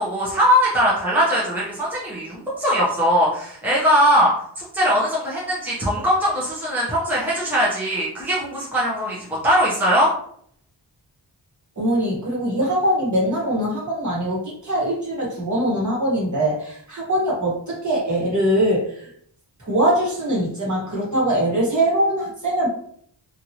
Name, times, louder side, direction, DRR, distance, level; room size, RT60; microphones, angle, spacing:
voice 1, 0.0-9.2 9.4-10.1, equal, 5° right, -6 dB, 0.7 m, -20 dB
voice 2, 11.8-19.1 19.6-22.7, right 1 dB, 40° right, -5 dB, 1.3 m, -22 dB
2.8 x 2.5 x 2.8 m, 0.63 s
wide cardioid pair, 105°, 44 cm